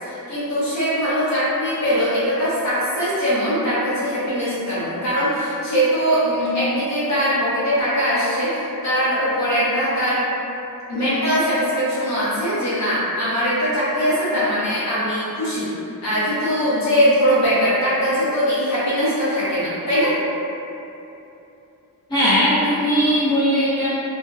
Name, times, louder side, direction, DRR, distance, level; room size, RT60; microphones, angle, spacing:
voice 1, 0.0-10.2 10.9-15.7 16.0-20.1, equal, 50° left, -11 dB, 0.9 m, -21 dB
voice 2, 22.1-23.9, equal, 15° left, -14 dB, 0.6 m, -18 dB
2.5 x 2.1 x 2.4 m, 2.9 s
wide cardioid pair, 165°, 36 cm